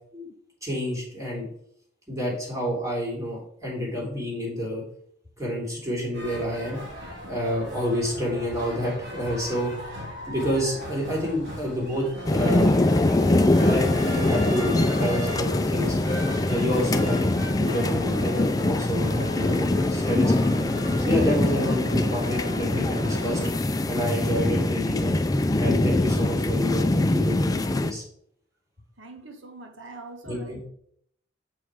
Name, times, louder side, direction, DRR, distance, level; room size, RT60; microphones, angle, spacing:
voice 1, 0.6-1.5 2.1-4.8 5.4-6.8 7.3-9.7 10.3-15.9 16.5-17.3 17.6-20.7 21.0-23.4 23.9-25.2 25.6-28.0 30.2-30.6, equal, 15° right, -4 dB, 3.4 m, -29 dB
sound 1, 6.1-23.6, equal, 60° right, 3.4 m, -37 dB
sound 2, 12.2-27.9, left 2 dB, 20° left, 0.5 m, -23 dB
voice 2, 29.0-30.7, right 2 dB, 80° right, 4 dB, 1.4 m, -43 dB
7.8 x 5.5 x 4.9 m, 0.68 s
head